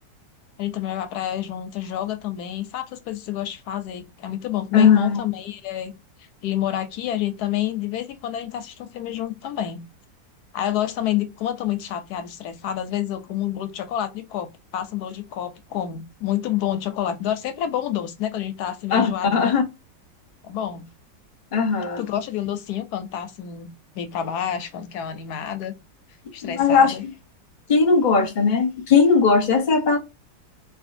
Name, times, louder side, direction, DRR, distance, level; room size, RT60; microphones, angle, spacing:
voice 1, 0.6-5.9 6.2-9.8 10.5-19.6 20.4-20.8 22.0-23.7 23.9-25.7 26.3-27.0, left 11 dB, 70° left, 1.0 m, -28 dB
voice 2, 4.7-5.2 18.9-19.6 21.5-22.1 26.4-27.1 27.7-30.0, left 5 dB, 35° left, 0.8 m, -18 dB
3.4 x 2.3 x 2.6 m
omnidirectional pair, 2.0 m